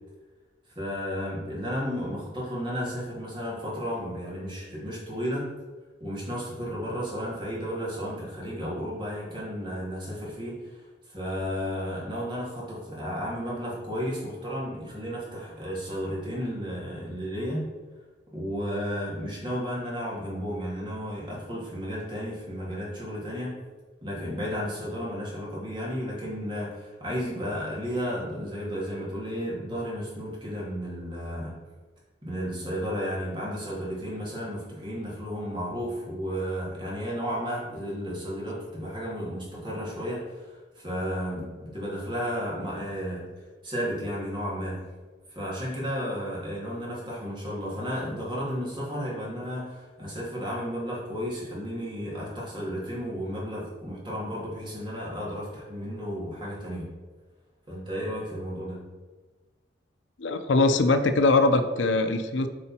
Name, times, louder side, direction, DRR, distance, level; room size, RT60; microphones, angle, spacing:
voice 1, 0.7-5.5 6.0-10.8 11.1-17.7 18.3-23.6 24.0-31.5 32.2-43.3 43.6-44.8 45.3-56.9 57.7-58.8, equal, 25° right, -6 dB, 2.4 m, -33 dB
voice 2, 60.2-62.5, left 3 dB, 85° left, 8 dB, 0.6 m, -22 dB
8.4 x 4.3 x 4.3 m, 1.3 s
head